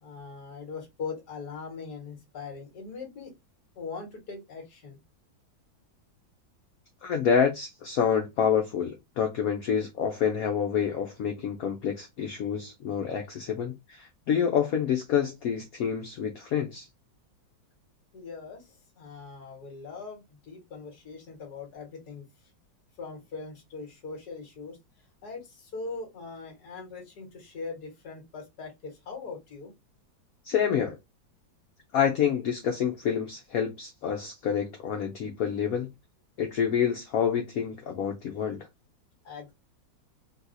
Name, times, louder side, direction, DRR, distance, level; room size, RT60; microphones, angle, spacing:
voice 1, 0.0-3.3 3.8-5.0 18.1-22.2 23.0-24.8 25.2-29.7 39.2-39.5, left 4 dB, 55° left, 1.8 m, -41 dB
voice 2, 7.0-16.9 30.4-31.0 31.9-35.9 36.4-38.6, left 8 dB, 75° left, 0.8 m, -27 dB
3.9 x 2.3 x 2.5 m
omnidirectional pair, 2.1 m